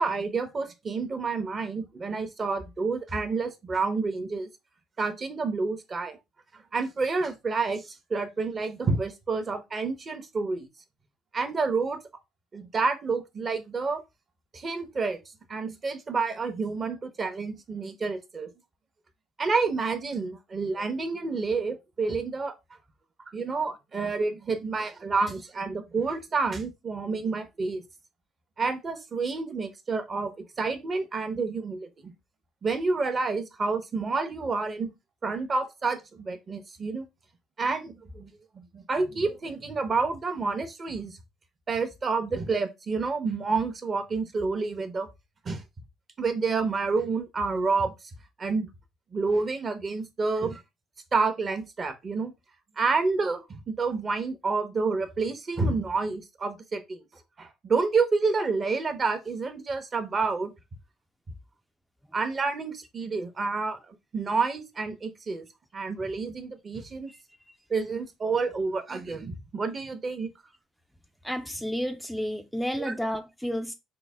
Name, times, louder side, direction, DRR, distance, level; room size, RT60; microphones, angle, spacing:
voice 1, 0.0-4.5 5.0-6.2 6.7-10.7 11.3-12.0 12.5-14.0 14.5-15.2 15.5-18.5 19.4-22.5 23.3-27.8 28.6-30.3 30.6-32.1 32.6-34.9 35.2-37.1 37.6-41.2 41.7-45.1 45.5-45.6 46.2-47.9 48.4-48.7 49.1-50.6 51.1-52.3 52.8-57.0 57.4-60.5 62.1-63.8 64.1-65.5 65.7-67.1 67.7-70.3 72.8-73.1, right 4 dB, 35° right, 0.7 m, -29 dB
voice 2, 71.2-73.7, equal, ahead, 0.3 m, -31 dB
3.9 x 2.1 x 3.3 m
supercardioid pair, 85°, 0 cm